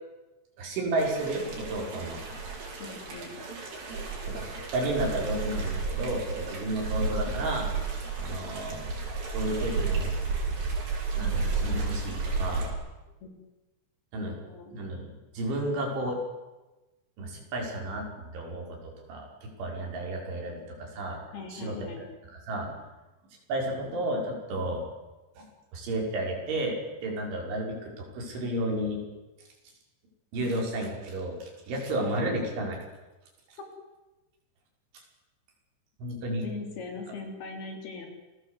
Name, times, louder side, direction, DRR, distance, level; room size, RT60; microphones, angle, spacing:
voice 1, 0.6-2.2 4.3-7.7 8.2-8.8 9.3-10.1 11.1-12.7 14.1-14.4 14.7-16.2 17.2-21.2 21.5-22.1 22.3-22.7 23.5-24.9 25.4-25.5 25.7-29.0 30.3-32.8 36.0-36.5, right 1 dB, 80° right, 0 dB, 7.6 m, -32 dB
sound 1, 1.0-12.7, right 4 dB, 55° right, 6.8 m, -32 dB
voice 2, 2.8-3.3 13.2-13.3 14.5-14.7 21.3-22.1 23.7-23.8 30.4-30.5 36.4-38.1, left 3 dB, 60° left, 3 dB, 5.5 m, -40 dB
27.5 x 19.5 x 8.2 m, 1.1 s
omnidirectional pair, 5.3 m